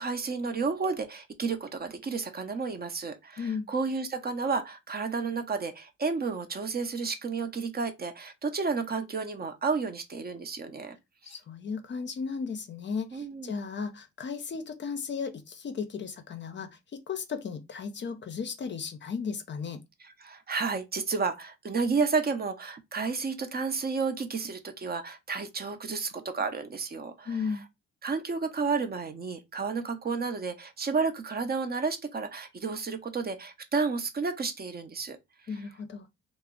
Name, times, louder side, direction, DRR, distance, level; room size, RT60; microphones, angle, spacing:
voice 1, 0.0-11.0 13.1-13.5 20.0-27.4 28.0-35.2, right 4 dB, 30° right, 0.5 m, -31 dB
voice 2, 3.4-3.7 11.2-16.7 17.1-19.8 27.3-27.6 35.5-36.1, left 5 dB, 40° left, 0.5 m, -35 dB
2.3 x 2.0 x 3.6 m
cardioid pair, 90°, 30 cm